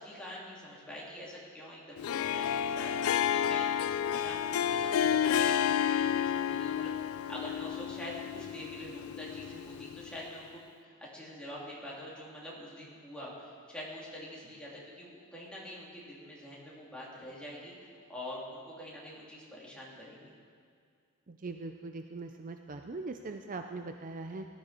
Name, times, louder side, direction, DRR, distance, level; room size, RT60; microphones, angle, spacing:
voice 1, 0.0-3.7 4.1-20.3, left 1 dB, 5° left, -6 dB, 3.2 m, -45 dB
Harp, 2.0-10.2, left 9 dB, 80° left, 0.4 m, -31 dB
voice 2, 21.3-24.5, right 3 dB, 40° right, 6 dB, 0.5 m, -41 dB
18.0 x 12.5 x 4.5 m, 2.2 s
head